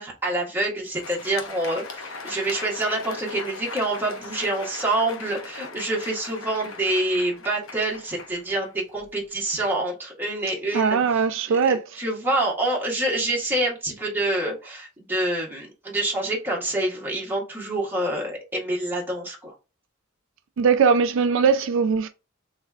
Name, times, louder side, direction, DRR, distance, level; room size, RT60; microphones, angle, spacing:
voice 1, 0.0-11.0 11.5-19.5, right 1 dB, 10° right, 1.4 m, -27 dB
Crowd, 0.7-9.2, left 4 dB, 80° left, 0.9 m, -39 dB
voice 2, 10.7-11.8 20.6-22.1, right 6 dB, 65° right, 0.3 m, -20 dB
3.3 x 3.2 x 3.5 m
head